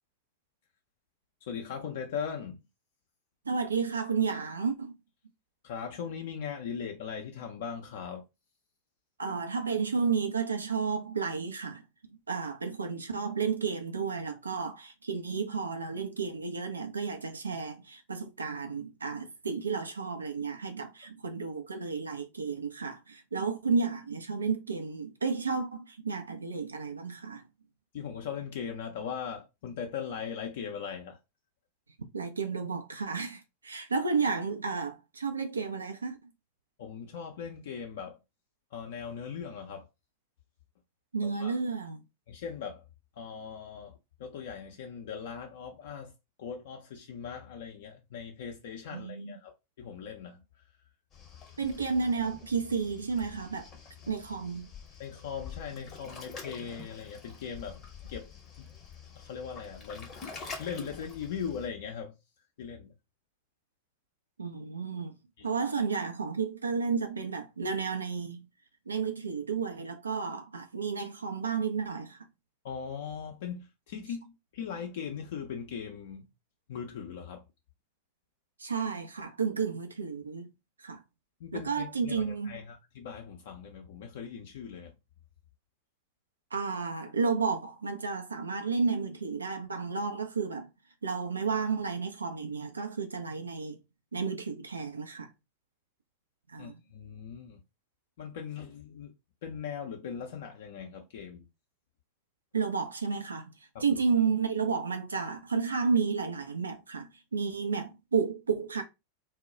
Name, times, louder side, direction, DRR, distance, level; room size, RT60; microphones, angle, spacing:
voice 1, 1.4-2.6 5.6-8.2 27.9-31.2 36.8-38.2 38.7-39.9 41.2-41.6 42.3-42.8 43.2-46.1 46.4-50.4 55.0-58.3 58.6-58.7 59.2-62.1 62.6-62.9 65.4-65.5 72.6-76.3 76.7-77.4 81.4-84.9 96.6-97.6 98.2-99.1 99.4-101.5 103.7-104.0, left 7 dB, 55° left, 0.5 m, -39 dB
voice 2, 3.5-4.9 9.2-11.8 12.1-27.4 32.1-36.2 41.1-42.0 48.9-49.4 51.6-53.7 54.1-54.7 64.4-65.2 65.4-68.5 68.9-72.2 78.6-80.5 80.8-81.0 81.5-82.6 86.5-90.7 91.0-93.8 94.1-95.3 96.5-96.8 102.5-103.5 103.8-108.8, right 5 dB, 75° right, 0.4 m, -32 dB
Waves surf, 51.1-61.7, left 5 dB, 30° left, 0.7 m, -46 dB
2.2 x 2.0 x 3.8 m
figure-of-eight pair, 90°, 0 cm